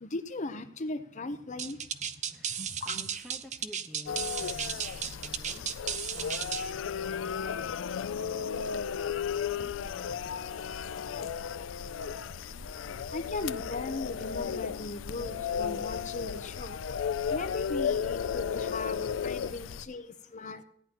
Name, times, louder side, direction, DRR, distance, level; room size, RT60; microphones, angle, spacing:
voice 1, 0.0-1.8 2.6-3.0 13.1-16.8 17.3-20.6, left 2 dB, 40° left, 10 dB, 0.8 m, -38 dB
voice 2, 1.3-6.6, equal, ahead, 3 dB, 1.1 m, -53 dB
sound 1, 1.6-6.7, right 8 dB, 35° right, 0.5 m, -35 dB
sound 2, 4.1-19.8, left 7 dB, 70° left, 0.4 m, -34 dB
sound 3, 11.0-18.9, equal, 65° right, 5.6 m, -54 dB
17.0 x 10.0 x 3.0 m, 0.68 s
head